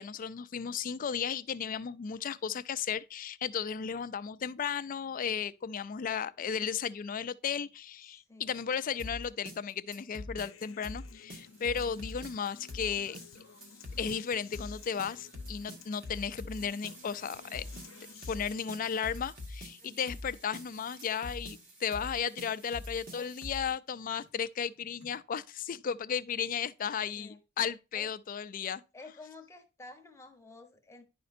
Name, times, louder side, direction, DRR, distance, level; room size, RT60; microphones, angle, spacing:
voice 1, 0.0-13.2 14.0-17.7 18.3-28.8, left 7 dB, 45° left, 0.4 m, -35 dB
voice 2, 8.1-8.5 19.8-20.2 23.1-23.3 27.2-27.4 27.9-28.1 28.6-31.0, left 2 dB, 15° left, 0.9 m, -51 dB
sound 1, 9.0-23.7, left 2 dB, 45° right, 1.5 m, -43 dB
Human voice / Acoustic guitar, 10.4-18.3, left 6 dB, 80° left, 0.7 m, -55 dB
sound 2, 11.4-23.6 24.1-25.2, right 3 dB, 65° right, 2.4 m, -58 dB
11.0 x 5.0 x 2.5 m
head